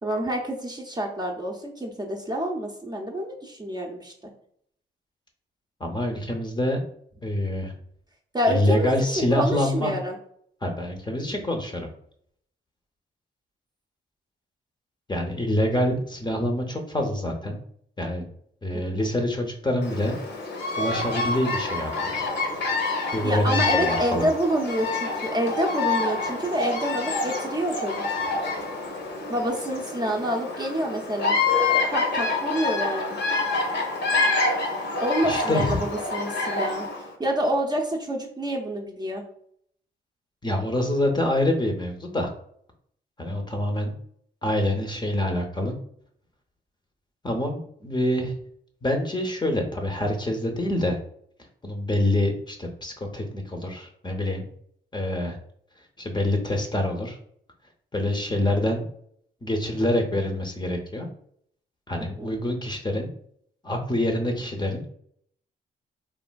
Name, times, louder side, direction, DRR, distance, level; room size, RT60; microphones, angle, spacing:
voice 1, 0.0-4.1 8.3-10.2 18.7-19.1 23.2-28.0 29.3-31.4 31.9-33.2 35.0-36.9 37.2-39.2 62.0-62.3, equal, 20° right, 0 dB, 0.6 m, -27 dB
voice 2, 5.8-6.8 7.2-7.7 8.5-9.9 10.6-11.9 15.1-17.6 18.0-18.3 18.6-20.2 20.8-22.2 23.1-24.3 35.2-35.8 40.4-42.3 43.2-43.9 44.4-45.7 47.2-48.3 48.8-51.0 51.6-54.5 54.9-55.4 56.0-57.2 57.9-58.9 59.4-61.1 61.9-63.1 63.6-64.8, left 1 dB, 20° left, 2 dB, 0.6 m, -26 dB
Bird vocalization bird call bird song, 19.8-37.1, left 3 dB, 60° left, 0.7 m, -27 dB
3.2 x 2.4 x 2.2 m, 0.67 s
supercardioid pair, 55°, 20 cm